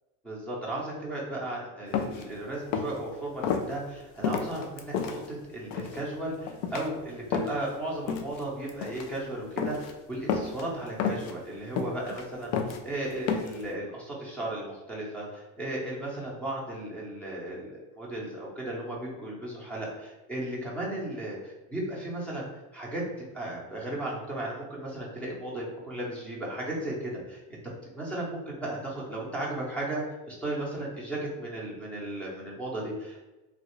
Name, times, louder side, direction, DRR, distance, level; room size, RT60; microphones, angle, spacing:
voice 1, 0.2-12.5 12.8-22.5 22.7-23.0 23.3-27.6 27.9-33.2, right 1 dB, 5° left, -4 dB, 0.6 m, -35 dB
sound 1, 1.9-2.2 2.7-3.0 3.4-3.7 4.2-5.2 5.7-6.0 6.5-6.9 7.3-7.7 8.1-8.4 8.7-9.1 9.6-9.9 10.3-10.7 11.0-11.3 11.8-12.2 12.5-12.8 13.3-13.6, left 6 dB, 80° left, 0.5 m, -30 dB
3.1 x 2.4 x 3.0 m, 1.1 s
cardioid pair, 160°, 37 cm